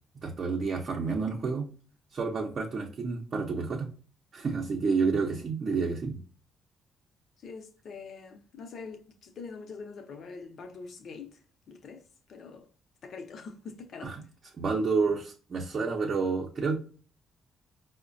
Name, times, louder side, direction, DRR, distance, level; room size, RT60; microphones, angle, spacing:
voice 1, 0.2-1.7 2.1-3.9 4.3-6.2 14.0-14.2 14.6-16.8, right 4 dB, 50° right, 0.6 m, -29 dB
voice 2, 7.4-11.4 11.7-12.7 13.0-14.2, left 4 dB, 60° left, 0.6 m, -44 dB
4.8 x 2.1 x 2.5 m
cardioid pair, 90°, 0 cm